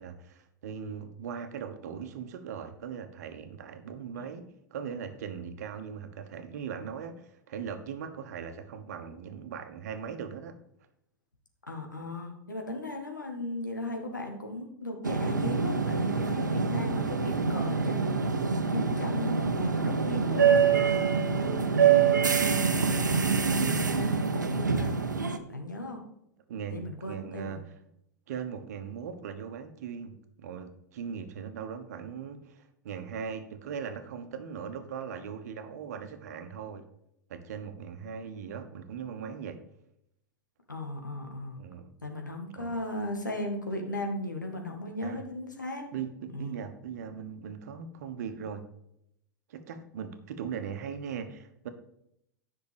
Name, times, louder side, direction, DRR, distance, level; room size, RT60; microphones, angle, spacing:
voice 1, 0.0-4.4 4.7-10.6 26.5-27.7 28.3-36.8 37.3-39.6 41.6-41.9 42.5-42.7 45.0-45.2 45.9-48.7 49.5-51.7, right 7 dB, 60° right, 8 dB, 1.3 m, -39 dB
voice 2, 11.7-18.2 18.7-20.6 21.0-24.9 25.5-26.0 26.7-27.6 40.7-41.6 42.0-45.8 46.3-46.5, left 1 dB, 85° left, 2 dB, 2.0 m, -37 dB
sound 1, 15.0-25.4, right 6 dB, 80° right, 0.9 m, -25 dB
10.5 x 6.0 x 5.1 m, 0.77 s
figure-of-eight pair, 85°, 10 cm